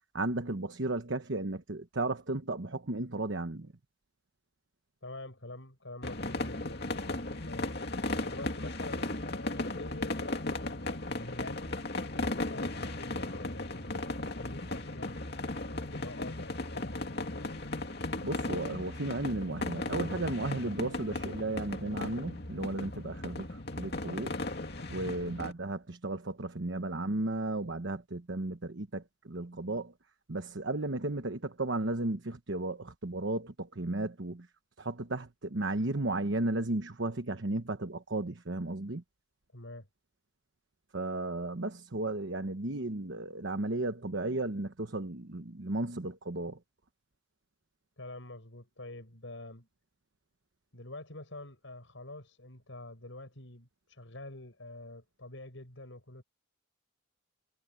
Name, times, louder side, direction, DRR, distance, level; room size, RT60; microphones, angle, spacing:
voice 1, 0.1-3.7 18.2-24.4 24.9-29.9 30.3-34.5 34.8-39.0 40.9-46.6, right 2 dB, 65° right, 1.1 m, -34 dB
voice 2, 5.0-7.7 8.2-11.6 12.3-15.2 15.6-17.7 24.8-25.1 39.5-39.9 48.0-49.7 50.7-56.2, left 2 dB, 70° left, 6.0 m, -47 dB
sound 1, 6.0-25.5, left 2 dB, 50° left, 2.6 m, -36 dB
head